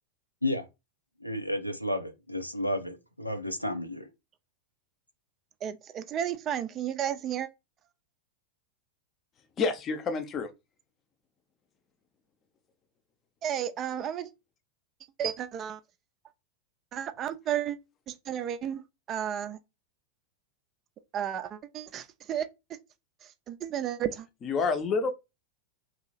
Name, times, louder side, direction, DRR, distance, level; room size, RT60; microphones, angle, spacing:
voice 1, 1.2-4.1, left 1 dB, 90° left, 0.5 m, -32 dB
voice 2, 5.6-7.5 13.4-14.3 15.2-15.8 16.9-17.8 18.1-18.8 19.1-19.6 21.1-22.5 23.2-24.3, right 10 dB, 30° right, 0.4 m, -32 dB
voice 3, 9.6-10.5 24.4-25.1, left 4 dB, 25° left, 0.7 m, -28 dB
3.1 x 2.7 x 4.0 m
figure-of-eight pair, 90°, 0 cm